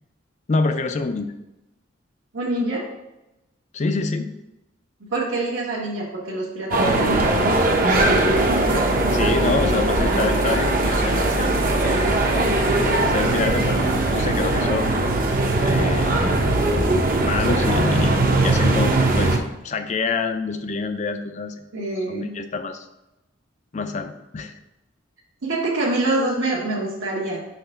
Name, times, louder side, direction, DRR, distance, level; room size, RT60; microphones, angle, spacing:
voice 1, 0.5-1.3 3.7-4.3 9.1-11.6 11.9-12.4 13.1-15.1 15.6-16.5 17.2-21.6 22.1-22.9 23.7-24.5, left 4 dB, 35° left, 8 dB, 0.4 m, -26 dB
voice 2, 2.3-2.9 5.1-7.6 19.2-19.3 21.7-22.4 25.4-27.4, right 2 dB, 70° right, -6 dB, 1.2 m, -25 dB
sound 1, 6.7-19.4, right 2 dB, 45° right, 0.7 m, -20 dB
5.7 x 3.3 x 5.6 m, 0.95 s
head